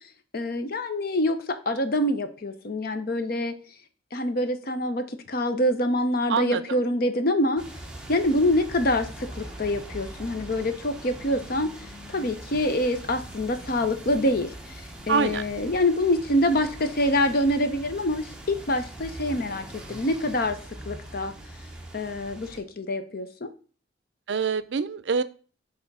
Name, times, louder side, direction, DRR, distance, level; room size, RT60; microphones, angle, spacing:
voice 1, 0.3-3.6 4.1-7.6 8.1-11.7 12.1-14.5 15.1-20.6 20.9-21.3 21.9-23.5, left 1 dB, 55° left, 9 dB, 0.7 m, -25 dB
voice 2, 6.3-6.6 15.1-15.4 24.3-25.2, right 5 dB, 65° right, 15 dB, 0.4 m, -25 dB
sound 1, 7.6-22.6, right 1 dB, 5° right, 0.9 m, -42 dB
5.8 x 3.5 x 5.4 m, 0.39 s
head